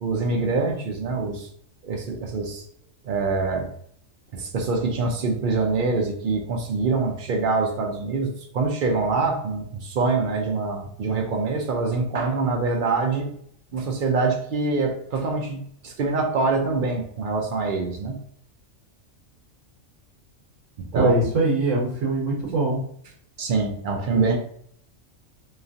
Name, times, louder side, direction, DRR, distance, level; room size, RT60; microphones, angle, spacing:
voice 1, 0.0-1.5 1.8-2.6 3.0-3.7 4.3-13.3 13.7-18.2 20.8-21.1 23.4-24.4, right 3 dB, 65° right, 2 dB, 0.5 m, -25 dB
voice 2, 20.9-22.8 24.1-24.4, right 2 dB, 80° right, -4 dB, 1.3 m, -22 dB
3.0 x 2.3 x 2.5 m, 0.65 s
omnidirectional pair, 1.3 m